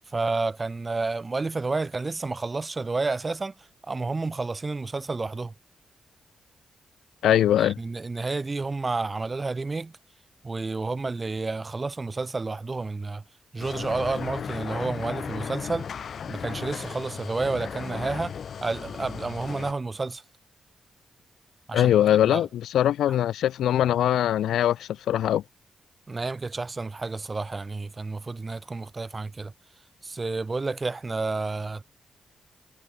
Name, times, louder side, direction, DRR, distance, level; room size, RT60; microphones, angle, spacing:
voice 1, 0.1-3.5 3.9-5.5 7.6-9.9 10.4-13.2 13.5-15.9 16.3-18.3 18.6-20.2 21.7-21.9 22.3-22.5 26.1-29.5 30.0-31.8, right 3 dB, 35° right, 1.3 m, -30 dB
voice 2, 7.2-7.8 21.7-25.4, left 11 dB, 90° left, 0.3 m, -22 dB
sound 1, 13.6-19.7, left 7 dB, 65° left, 2.9 m, -36 dB
cardioid pair, 65°, 0 cm